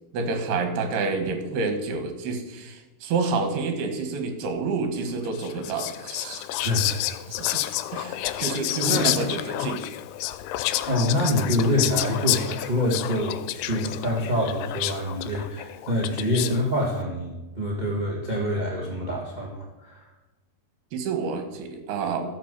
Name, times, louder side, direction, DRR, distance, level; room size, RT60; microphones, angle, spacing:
voice 1, 0.1-6.5 7.3-7.6 7.9-9.8 20.9-22.2, right 4 dB, 75° right, 6 dB, 3.5 m, -28 dB
Whispering, 5.3-16.7, left 14 dB, 85° left, 2.7 m, -30 dB
voice 2, 6.6-6.9 8.8-9.3 10.8-20.1, left 1 dB, 20° right, -2 dB, 1.1 m, -26 dB
14.0 x 7.6 x 6.8 m, 1.1 s
omnidirectional pair, 4.6 m